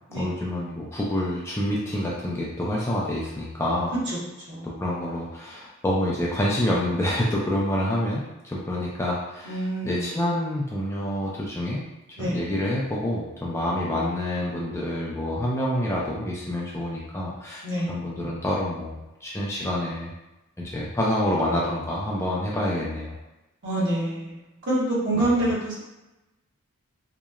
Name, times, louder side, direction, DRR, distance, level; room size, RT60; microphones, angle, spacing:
voice 1, 0.2-3.9 4.6-11.8 12.2-20.1 20.6-23.1 25.1-25.5, left 1 dB, 10° left, -5 dB, 0.3 m, -27 dB
voice 2, 4.5-4.8 9.4-10.2 12.2-12.4 17.6-17.9 23.6-25.8, right 1 dB, 55° right, -7 dB, 1.0 m, -26 dB
2.8 x 2.1 x 2.3 m, 0.98 s
head